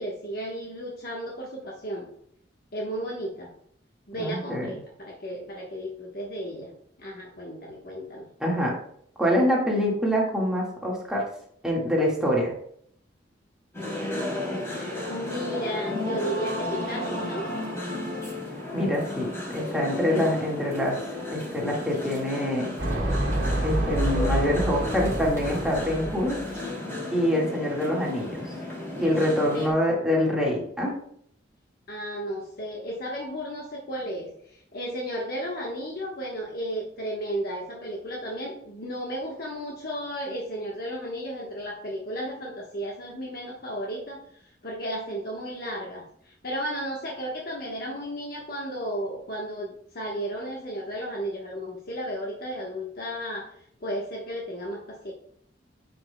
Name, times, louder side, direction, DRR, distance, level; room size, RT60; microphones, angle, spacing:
voice 1, 0.0-2.1 2.7-3.5 4.1-6.7 7.0-8.3 13.8-17.5 29.4-30.2 31.9-44.2 44.6-53.5 53.8-55.1, equal, 55° left, -2 dB, 1.2 m, -34 dB
voice 2, 4.2-4.7 8.4-8.7 9.2-11.3 11.6-12.5 18.7-21.0 21.3-22.7 23.6-26.4 27.1-28.5 29.0-31.0, equal, 5° right, -3 dB, 1.7 m, -25 dB
sound 1, 13.7-29.7, left 2 dB, 15° left, 3.0 m, -33 dB
sound 2, 22.8-26.6, right 1 dB, 90° right, 1.5 m, -28 dB
10.0 x 5.3 x 2.2 m, 0.67 s
head